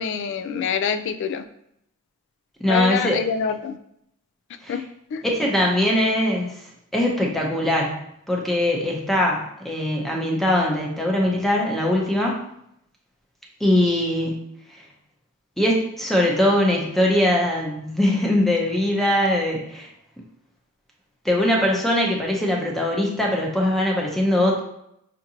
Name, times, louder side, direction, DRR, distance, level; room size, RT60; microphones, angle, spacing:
voice 1, 0.0-1.4 2.7-3.8 4.7-4.8 5.1-5.2, left 6 dB, 60° left, 10 dB, 0.3 m, -25 dB
voice 2, 2.6-3.2 4.6-4.8 5.2-6.5 6.9-7.9 8.3-12.4 13.6-14.4 15.6-19.9 21.2-24.6, left 1 dB, ahead, -2 dB, 0.7 m, -21 dB
5.7 x 2.6 x 2.9 m, 0.76 s
head